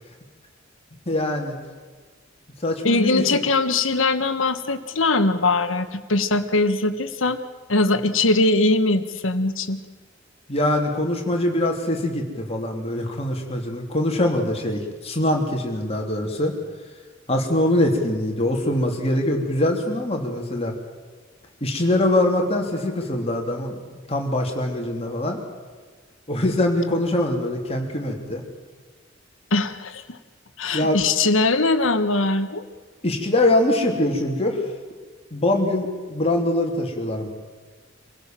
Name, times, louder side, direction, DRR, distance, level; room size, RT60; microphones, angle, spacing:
voice 1, 1.0-1.6 2.6-3.2 10.5-16.5 17.3-20.7 21.6-23.8 24.1-25.4 26.3-28.4 30.7-31.0 33.0-34.6 35.3-37.3, left 1 dB, 30° left, 1 dB, 3.4 m, -23 dB
voice 2, 2.8-7.4 7.7-9.8 29.5-30.2 30.6-32.6, left 2 dB, 80° left, 9 dB, 1.5 m, -21 dB
26.0 x 16.5 x 7.7 m, 1.5 s
head